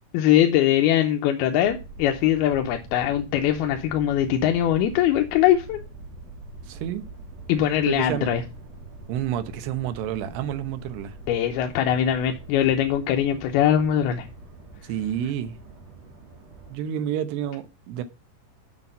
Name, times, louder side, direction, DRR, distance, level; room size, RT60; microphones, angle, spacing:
voice 1, 0.1-5.8 7.5-8.4 11.3-14.3, left 11 dB, 75° left, 2.6 m, -21 dB
sound 1, 1.6-16.8, right 2 dB, 45° right, 3.3 m, -43 dB
voice 2, 6.7-7.0 7.9-8.3 9.1-11.1 14.8-15.5 16.7-18.0, right 10 dB, 80° right, 3.0 m, -29 dB
7.5 x 6.8 x 5.4 m
omnidirectional pair, 4.8 m